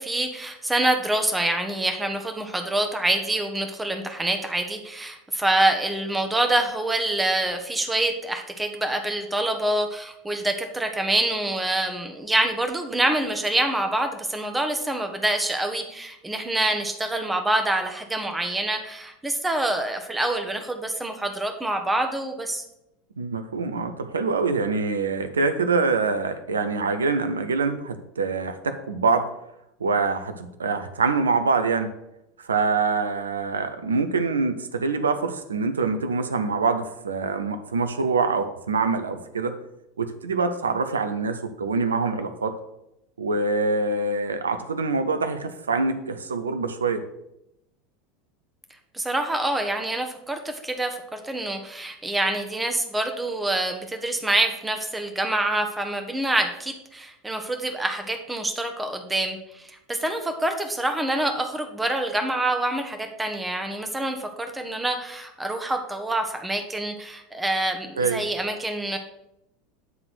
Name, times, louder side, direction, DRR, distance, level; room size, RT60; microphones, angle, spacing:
voice 1, 0.0-22.6 48.9-69.0, right 1 dB, 10° right, 5 dB, 1.2 m, -26 dB
voice 2, 23.2-29.3 29.8-31.9 32.4-39.6 40.0-42.6 43.2-47.0 68.0-68.2, right 4 dB, 75° right, 9 dB, 0.7 m, -25 dB
9.4 x 3.8 x 6.3 m, 0.84 s
figure-of-eight pair, 80°, 0 cm